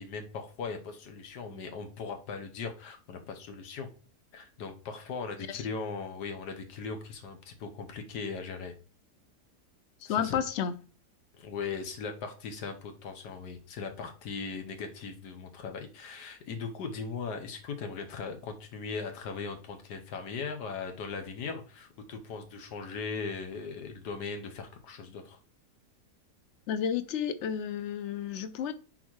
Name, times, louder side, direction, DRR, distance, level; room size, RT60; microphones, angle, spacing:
voice 1, 0.0-3.9 4.3-8.7 10.0-10.4 11.4-25.4, left 5 dB, 80° left, 1.5 m, -39 dB
voice 2, 10.0-10.8 26.7-28.7, left 8 dB, 60° left, 0.7 m, -31 dB
9.9 x 4.2 x 3.1 m
omnidirectional pair, 1.8 m